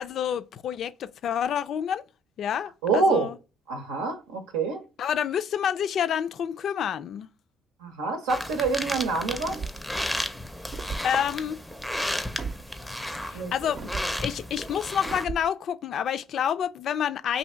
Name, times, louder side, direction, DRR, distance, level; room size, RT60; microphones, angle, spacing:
voice 1, 0.0-2.0 2.4-3.4 5.0-7.3 11.0-11.6 13.2-13.9 14.2-17.4, left 8 dB, 60° left, 0.4 m, -28 dB
voice 2, 2.8-3.3 3.7-4.8 7.8-9.6 13.3-13.5, right 3 dB, 90° right, 0.7 m, -26 dB
sound 1, 8.3-15.2, left 1 dB, 5° left, 0.5 m, -33 dB
sound 2, 9.4-9.9 10.7-11.1 12.4-12.6 13.8-14.1 15.0-15.5, right 5 dB, 55° right, 0.6 m, -35 dB
2.7 x 2.7 x 4.3 m
supercardioid pair, 65°, 0 cm